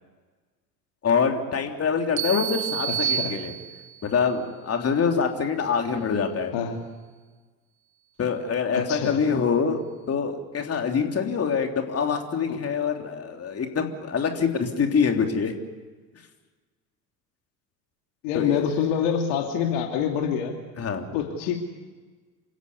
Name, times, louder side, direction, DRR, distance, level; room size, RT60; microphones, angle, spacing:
voice 1, 1.0-3.5 4.0-6.5 8.2-15.6 18.3-18.6 20.8-21.1, left 6 dB, 30° left, 4 dB, 3.3 m, -25 dB
sound 1, 2.2-4.1, right 9 dB, 75° right, 1.0 m, -29 dB
voice 2, 2.9-3.3 6.5-6.8 8.7-9.2 12.5-12.6 18.2-20.6 21.1-21.6, left 8 dB, 55° left, 4 dB, 2.8 m, -26 dB
28.0 x 16.5 x 9.8 m, 1.3 s
figure-of-eight pair, 70°, 49 cm